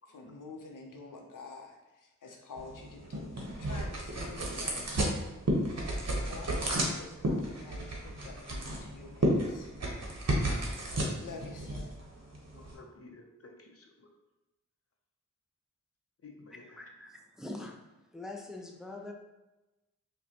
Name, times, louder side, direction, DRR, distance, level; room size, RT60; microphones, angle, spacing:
voice 1, 0.1-5.0 6.3-9.7 11.2-12.0, left 3 dB, 90° left, 1 dB, 0.7 m, -48 dB
sound 1, 2.6-12.8, right 1 dB, 55° right, 0.9 m, -33 dB
voice 2, 10.4-10.8 12.5-14.1 16.2-16.8, left 3 dB, 50° left, 2 dB, 0.6 m, -53 dB
voice 3, 16.8-17.8 18.1-19.1, left 2 dB, ahead, 2 dB, 0.4 m, -43 dB
4.8 x 2.2 x 2.8 m, 1.0 s
wide cardioid pair, 55°, 31 cm